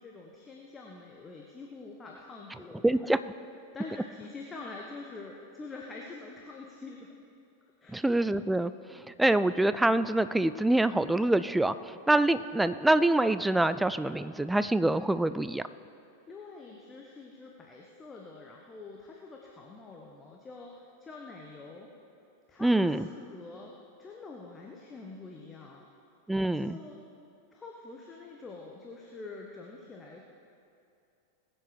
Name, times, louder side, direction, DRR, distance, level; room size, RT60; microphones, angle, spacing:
voice 1, 0.0-3.2 3.7-7.1 7.8-8.0 9.1-9.2 16.1-21.9 22.5-25.9 26.5-27.0 27.5-30.2, left 3 dB, 15° left, 0 dB, 1.2 m, -46 dB
voice 2, 2.8-3.2 7.9-8.7 9.2-11.7 12.1-15.6 22.6-23.1 26.3-26.8, right 1 dB, 5° right, 14 dB, 0.4 m, -25 dB
20.5 x 7.7 x 5.0 m, 2.6 s
figure-of-eight pair, 90°, 0 cm